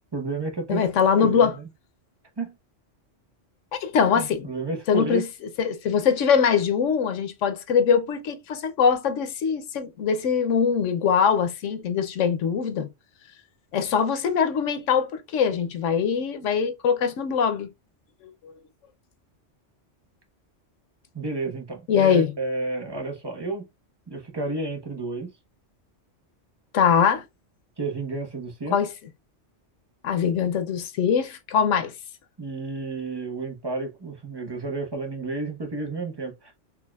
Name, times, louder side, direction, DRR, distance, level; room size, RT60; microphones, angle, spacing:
voice 1, 0.1-0.8 1.1-1.7 2.4-2.5 4.1-5.2 21.1-23.7 24.1-25.3 27.8-28.8 32.4-36.5, right 3 dB, 20° right, 1.1 m, -31 dB
voice 2, 0.7-1.5 3.7-4.5 4.9-5.3 5.6-12.9 13.7-17.7 21.9-22.3 26.7-27.2 28.7-28.9 30.0-31.9, left 7 dB, 90° left, 1.1 m, -22 dB
4.7 x 2.8 x 2.3 m
omnidirectional pair, 1.2 m